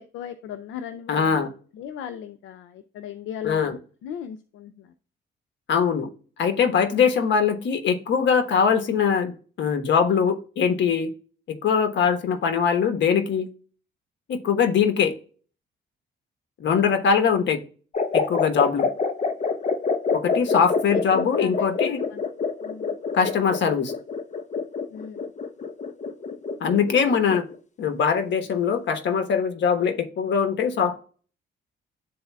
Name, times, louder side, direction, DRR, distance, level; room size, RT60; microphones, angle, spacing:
voice 1, 0.0-1.4 1.8-3.8 4.0-4.7 20.9-21.5 22.1-22.2 22.6-22.9 24.9-25.2, left 8 dB, 80° left, 10 dB, 0.5 m, -37 dB
voice 2, 1.1-1.5 3.4-3.8 5.7-6.1 6.4-11.1 11.5-13.5 14.3-15.1 16.6-17.6 18.1-18.9 20.1-22.0 23.1-23.9 26.6-27.4 27.8-31.0, left 6 dB, 65° left, 7 dB, 1.2 m, -22 dB
sound 1, 17.9-27.5, left 4 dB, 35° left, 0.8 m, -26 dB
11.0 x 4.1 x 2.3 m, 0.40 s
cardioid pair, 90°, 20 cm